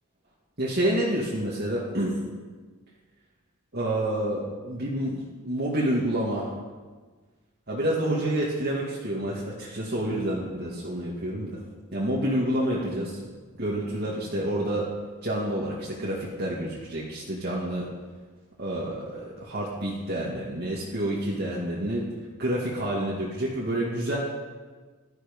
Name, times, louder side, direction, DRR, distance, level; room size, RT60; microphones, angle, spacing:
voice 1, 0.6-2.2 3.7-6.5 7.7-11.6 11.9-13.2 13.6-14.9 15.2-17.9 18.6-22.1 22.4-24.2, right 1 dB, 50° right, -5 dB, 2.3 m, -28 dB
15.0 x 12.5 x 5.5 m, 1.4 s
head